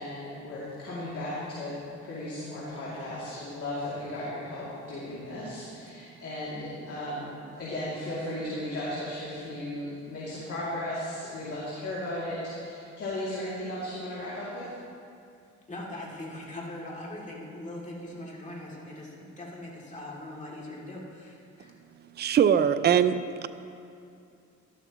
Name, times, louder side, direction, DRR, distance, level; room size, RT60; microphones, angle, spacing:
voice 1, 0.0-1.8 2.0-7.3 7.6-14.6, left 1 dB, 50° left, -9 dB, 2.7 m, -35 dB
voice 2, 15.7-21.7, left 1 dB, 25° left, -4 dB, 2.7 m, -41 dB
voice 3, 22.2-23.5, right 8 dB, 35° right, 12 dB, 0.4 m, -22 dB
12.0 x 12.0 x 3.1 m, 2.5 s
cardioid pair, 90°, 30 cm